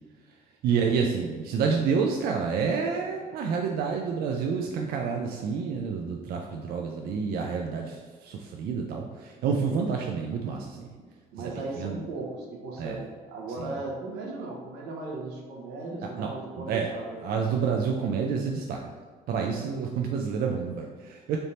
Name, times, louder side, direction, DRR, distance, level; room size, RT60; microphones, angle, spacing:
voice 1, 0.6-10.9 11.4-11.5 11.8-12.0 12.8-13.0 13.6-13.7 16.2-16.3 16.6-16.9 17.2-18.8 19.3-21.4, right 6 dB, 65° right, 1 dB, 0.4 m, -29 dB
voice 2, 11.3-17.2, right 2 dB, 90° right, -1 dB, 0.9 m, -37 dB
3.3 x 2.6 x 4.1 m, 1.5 s
cardioid pair, 110°, 17 cm